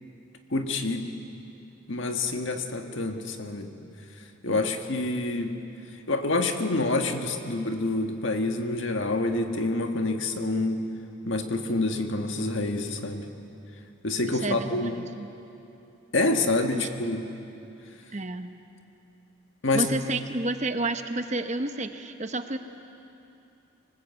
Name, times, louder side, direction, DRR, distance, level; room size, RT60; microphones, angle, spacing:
voice 1, 0.5-1.1 1.9-3.7 4.4-5.6 6.1-10.8 11.2-13.3 14.0-15.0 16.1-17.2 19.6-19.9, left 2 dB, 60° left, 5 dB, 1.7 m, -27 dB
voice 2, 14.3-15.3 16.7-16.9 18.1-18.5 19.7-22.6, right 2 dB, 35° right, 8 dB, 0.9 m, -31 dB
26.0 x 19.5 x 8.3 m, 2.8 s
head